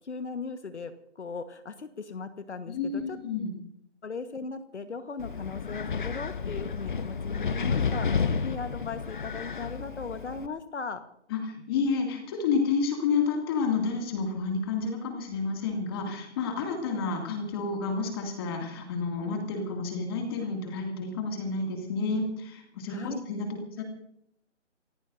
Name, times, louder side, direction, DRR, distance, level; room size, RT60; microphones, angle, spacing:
voice 1, 0.0-3.2 4.0-11.0 22.9-23.2, left 4 dB, 65° left, 9 dB, 1.4 m, -38 dB
voice 2, 2.7-3.5 11.3-23.5 23.8-23.9, left 4 dB, 20° left, 2 dB, 2.4 m, -30 dB
Wind, 5.2-10.5, left 5 dB, 40° left, 1.0 m, -31 dB
28.0 x 16.0 x 2.7 m, 0.73 s
figure-of-eight pair, 160°, 36 cm